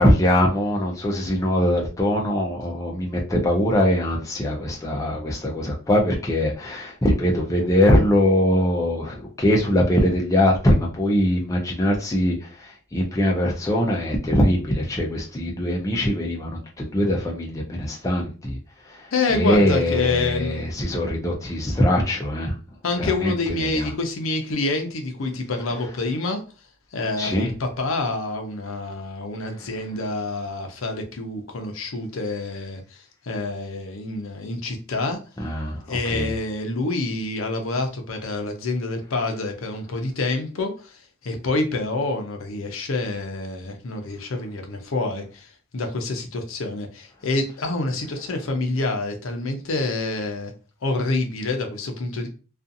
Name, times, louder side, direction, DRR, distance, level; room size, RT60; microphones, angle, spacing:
voice 1, 0.0-18.6 18.9-19.1 19.3-22.5 23.0-23.3 23.7-23.9 27.2-27.5 35.4-36.3, left 1 dB, 15° left, 0.4 m, -22 dB
voice 2, 19.1-20.7 22.8-26.4 26.9-35.2 35.9-50.5 50.8-52.3, left 2 dB, 75° left, 0.6 m, -27 dB
2.5 x 2.4 x 2.6 m
head